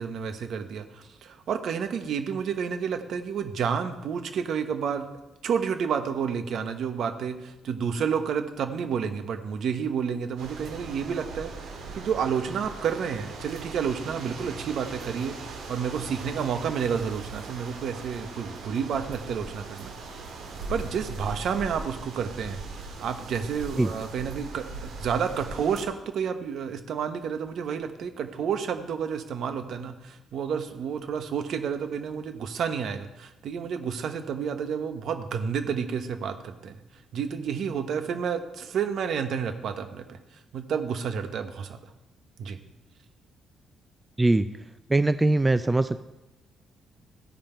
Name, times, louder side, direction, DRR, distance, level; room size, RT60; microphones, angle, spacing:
voice 1, 0.0-5.0 5.4-19.9 20.7-36.8 37.1-40.2 40.5-41.9 42.4-42.6, right 7 dB, 70° right, 8 dB, 1.0 m, -30 dB
sound 1, 10.4-25.9, right 3 dB, 90° right, 2.1 m, -40 dB
voice 2, 44.9-46.0, right 2 dB, 15° right, 11 dB, 0.4 m, -21 dB
15.5 x 5.2 x 4.5 m, 0.98 s
cardioid pair, 90°, 0 cm